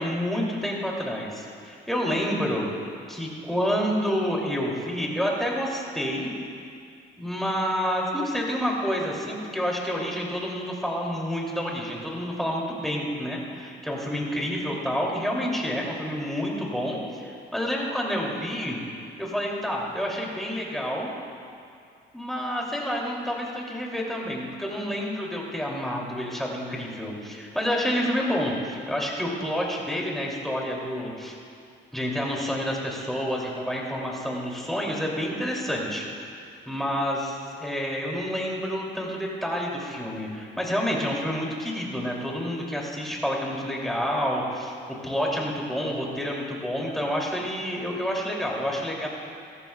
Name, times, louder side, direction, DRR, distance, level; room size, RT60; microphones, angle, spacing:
voice 1, 0.0-2.7 3.1-6.3 7.2-18.8 19.2-21.1 22.1-31.3 31.9-36.0 36.7-44.8 45.0-49.1, equal, ahead, -3 dB, 2.8 m, -29 dB
17.0 x 14.0 x 2.4 m, 2.4 s
cardioid pair, 90°, 20 cm